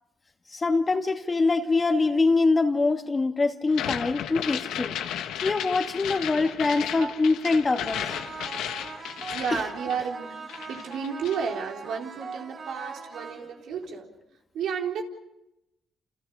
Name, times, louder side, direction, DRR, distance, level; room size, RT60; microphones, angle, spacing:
voice 1, 0.5-5.0 5.4-8.0, left 3 dB, 30° left, 2.1 m, -24 dB
sound 1, 3.7-10.2 10.5-11.5, left 10 dB, 90° left, 1.5 m, -34 dB
sound 2, 7.9-13.9, right 5 dB, 50° right, 5.5 m, -41 dB
voice 2, 9.3-14.1 14.5-15.0, right 6 dB, 80° right, 4.0 m, -32 dB
28.5 x 28.5 x 5.0 m
cardioid pair, 90°, 0 cm